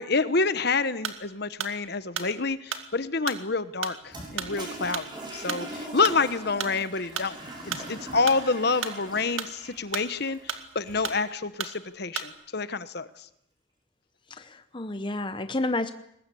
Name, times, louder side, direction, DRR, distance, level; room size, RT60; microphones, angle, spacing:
voice 1, 0.0-7.4 7.7-13.3, left 4 dB, 50° left, 13 dB, 1.1 m, -28 dB
sound 1, 1.0-1.3 1.6-6.8 7.2-8.4 8.7-10.2 10.5-11.2 11.6-11.8 12.2-12.4, right 7 dB, 75° right, 2.1 m, -34 dB
Toilet flush, 4.0-11.3, right 1 dB, 20° right, 6.7 m, -41 dB
voice 2, 14.3-15.9, left 2 dB, 25° left, 9 dB, 0.8 m, -30 dB
22.5 x 20.0 x 8.5 m, 0.77 s
head